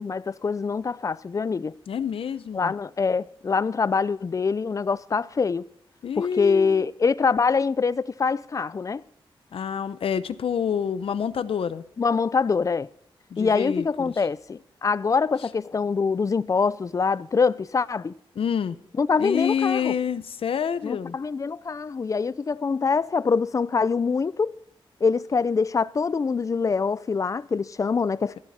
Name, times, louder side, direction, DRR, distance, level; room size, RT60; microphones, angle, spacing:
voice 1, 0.0-1.8 2.5-5.6 6.2-9.0 12.0-12.9 13.4-18.1 19.0-19.9 20.8-24.6 25.0-28.4, left 5 dB, 35° left, 0.4 m, -24 dB
voice 2, 1.9-2.7 6.0-6.9 9.5-11.8 13.3-14.1 18.4-18.8 19.2-21.2, left 7 dB, 80° left, 0.7 m, -27 dB
14.0 x 11.0 x 4.2 m
wide cardioid pair, 135°, 9 cm